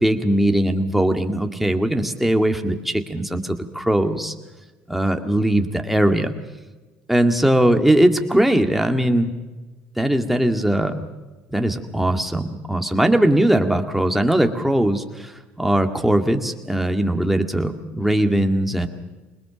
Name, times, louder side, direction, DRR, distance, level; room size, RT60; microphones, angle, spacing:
voice 1, 0.0-4.3 4.9-6.3 7.1-9.3 10.0-11.0 11.5-15.3 15.6-18.9, right 1 dB, 5° right, 5 dB, 2.1 m, -20 dB
22.5 x 20.0 x 6.9 m, 1.2 s
supercardioid pair, 85°, 5 cm